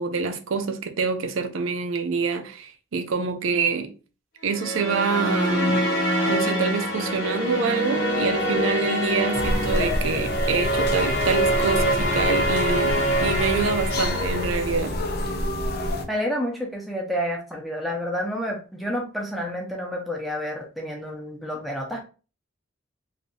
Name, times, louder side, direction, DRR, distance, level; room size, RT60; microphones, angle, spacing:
voice 1, 0.0-3.9 4.4-6.0 6.3-15.0, right 5 dB, 75° right, 0.5 m, -26 dB
sound 1, 4.5-14.9, equal, 65° left, 1.0 m, -25 dB
sound 2, 9.3-16.0, left 1 dB, 50° left, 0.5 m, -28 dB
voice 2, 16.1-22.0, equal, ahead, 0.7 m, -29 dB
3.2 x 2.7 x 2.7 m
head